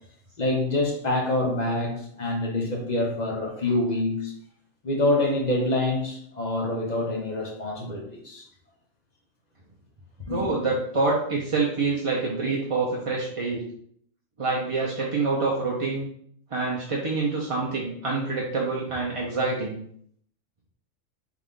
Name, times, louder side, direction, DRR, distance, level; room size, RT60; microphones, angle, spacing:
voice 1, 0.4-4.3 4.8-8.5 10.3-10.5, left 2 dB, 40° left, 0 dB, 0.8 m, -26 dB
voice 2, 10.3-13.6 14.4-16.1 16.5-19.8, right 3 dB, 35° right, -3 dB, 0.5 m, -26 dB
3.7 x 3.5 x 3.6 m, 0.65 s
omnidirectional pair, 1.3 m